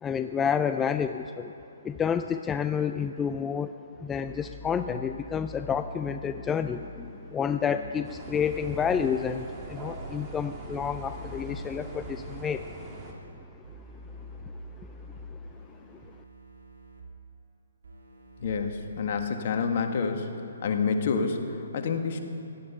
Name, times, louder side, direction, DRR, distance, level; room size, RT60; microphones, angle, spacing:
voice 1, 0.0-1.5 1.8-3.7 4.0-12.7 14.8-14.9 15.3-15.4 15.9-16.0, left 7 dB, 15° left, 9 dB, 0.3 m, -29 dB
sound 1, 4.2-12.6 13.6-17.0 17.8-19.1, equal, 85° right, 2.8 m, -45 dB
sound 2, 8.0-13.1, right 2 dB, 20° right, 2.3 m, -42 dB
voice 2, 18.4-20.3 20.6-22.2, left 5 dB, 50° left, 5 dB, 1.6 m, -28 dB
16.5 x 12.0 x 5.6 m, 2.8 s
hypercardioid pair, 140°, 0 cm